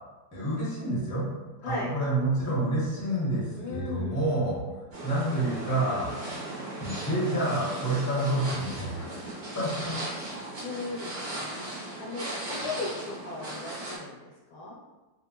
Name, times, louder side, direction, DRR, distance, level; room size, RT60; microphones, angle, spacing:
voice 1, 0.3-1.3 1.6-4.6 5.0-6.1 6.8-10.4, right 1 dB, 15° left, -8 dB, 0.8 m, -29 dB
voice 2, 3.6-4.2 10.6-14.8, left 3 dB, 75° left, -4 dB, 1.4 m, -37 dB
sound 1, 4.9-14.0, right 1 dB, 45° right, 0.8 m, -37 dB
3.2 x 2.7 x 2.8 m, 1.2 s
omnidirectional pair, 2.4 m